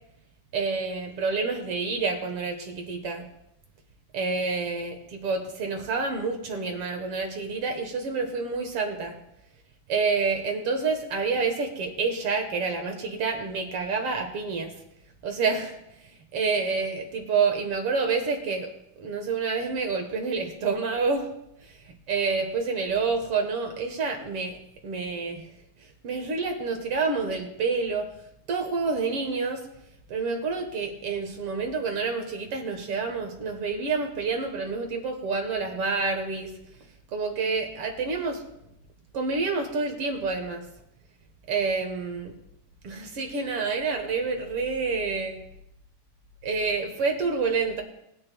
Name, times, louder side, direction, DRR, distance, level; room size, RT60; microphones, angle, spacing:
voice 1, 0.5-3.3 4.1-9.2 9.9-14.7 15.2-15.8 16.3-21.3 21.6-24.6 24.8-25.5 26.0-28.1 28.5-29.7 30.1-36.6 37.1-38.5 39.1-40.7 41.5-42.4 42.8-45.3 46.4-47.8, right 4 dB, 60° right, 4 dB, 1.7 m, -28 dB
21.0 x 9.6 x 2.2 m, 0.80 s
omnidirectional pair, 3.7 m